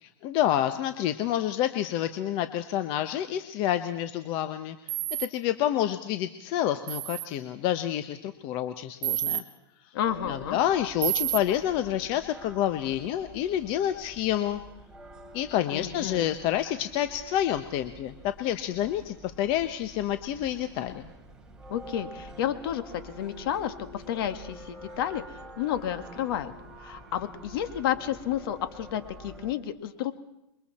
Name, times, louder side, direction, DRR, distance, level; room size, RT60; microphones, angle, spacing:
voice 1, 0.0-4.8 5.2-9.4 10.2-14.6 15.3-21.1, left 11 dB, 40° left, 9 dB, 1.1 m, -28 dB
sound 1, 4.9-5.3 6.9-7.3 9.0-9.4 11.0-11.4, right 17 dB, 35° right, 1.6 m, -29 dB
voice 2, 9.9-10.6 15.7-16.3 21.7-26.5 26.8-30.1, left 10 dB, 60° left, 9 dB, 2.0 m, -31 dB
sound 2, 10.0-29.6, equal, 5° right, 3.1 m, -48 dB
28.0 x 23.0 x 4.4 m, 0.88 s
supercardioid pair, 145°, 14 cm